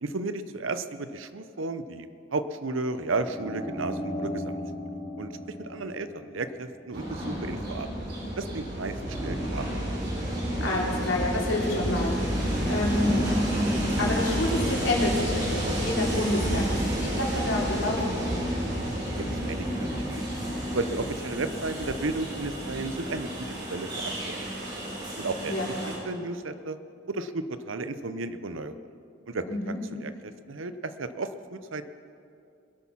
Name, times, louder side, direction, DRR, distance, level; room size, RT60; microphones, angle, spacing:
voice 1, 0.0-4.6 5.2-5.3 5.6-7.9 8.4-9.7 19.1-20.2 20.7-24.5 25.2-25.5 25.9-26.8 27.1-28.8 29.3-31.8, right 3 dB, 80° right, 11 dB, 0.8 m, -34 dB
sound 1, 3.0-7.0 8.8-9.5, left 1 dB, 5° left, 3.2 m, -37 dB
Train, 6.9-25.9, equal, 55° right, 4.2 m, -30 dB
voice 2, 10.6-12.1 12.7-13.2 14.0-18.4 25.4-25.9 29.5-29.8, left 1 dB, 80° left, -3 dB, 3.2 m, -28 dB
22.0 x 8.4 x 5.8 m, 2.5 s
head